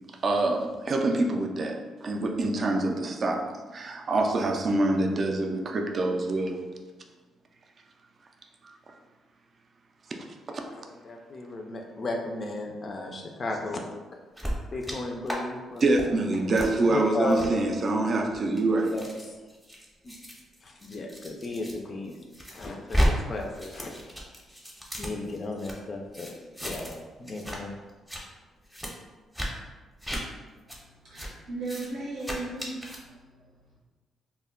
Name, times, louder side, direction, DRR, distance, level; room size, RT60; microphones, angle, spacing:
voice 1, 0.2-3.5 3.7-6.6 8.6-8.8 10.5-10.6 15.8-18.9, right 2 dB, 45° right, 3 dB, 0.3 m, -26 dB
voice 2, 10.7-13.8 14.7-15.9 16.9-17.5 18.9-19.0 20.0-20.1 20.6-22.1 22.5-24.0 25.0-26.3 26.6-26.9 27.2-27.7, left 2 dB, 45° left, 2 dB, 0.3 m, -34 dB
sound 1, 14.4-15.0 15.3-15.4 15.8-16.1 16.6-16.7 17.3-17.5 18.2-21.7 22.1-23.1 23.4-25.7 26.1-27.0 27.3-27.6 27.9-28.2 28.7-28.9 29.3-29.5 30.0-30.2 30.7-30.8 31.2-31.3 31.6-31.9 32.2-33.0, equal, ahead, 0.6 m, -33 dB
voice 3, 31.1-32.7, right 2 dB, 85° right, -5 dB, 0.7 m, -35 dB
2.1 x 2.1 x 3.6 m, 1.3 s
cardioid pair, 90°, 0 cm